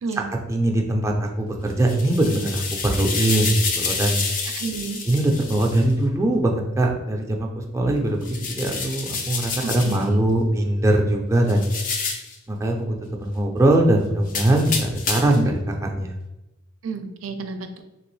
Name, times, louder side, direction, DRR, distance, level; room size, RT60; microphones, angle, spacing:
voice 1, 0.5-4.2 5.1-7.5 7.7-11.6 12.5-16.2, right 1 dB, 15° right, 1 dB, 0.4 m, -21 dB
sound 1, 1.7-5.8 8.2-10.1 11.5-12.4 14.3-15.5, left 4 dB, 40° left, 0.5 m, -28 dB
voice 2, 4.6-5.0 9.6-10.2 15.3-15.5 16.8-17.8, right 4 dB, 75° right, 7 dB, 0.4 m, -31 dB
3.3 x 2.9 x 3.1 m, 0.98 s
head